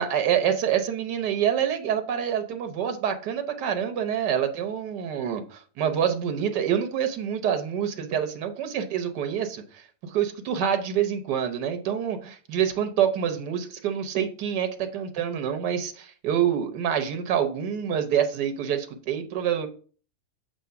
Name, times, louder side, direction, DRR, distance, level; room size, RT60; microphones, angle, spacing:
voice 1, 0.0-19.7, right 9 dB, 90° right, 1.5 m, -26 dB
7.6 x 2.9 x 5.6 m
omnidirectional pair, 1.8 m